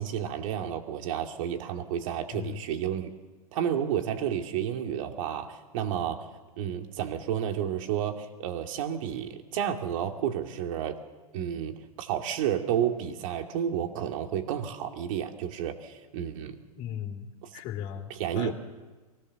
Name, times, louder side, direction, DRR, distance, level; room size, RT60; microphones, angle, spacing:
voice 1, 0.0-3.1 3.5-6.3 6.6-11.0 11.3-16.6 18.1-18.5, right 9 dB, 60° right, 5 dB, 2.5 m, -31 dB
voice 2, 2.3-2.6 16.7-18.5, left 10 dB, 45° left, 0 dB, 3.0 m, -37 dB
24.0 x 19.0 x 6.9 m, 1.3 s
hypercardioid pair, 125°, 19 cm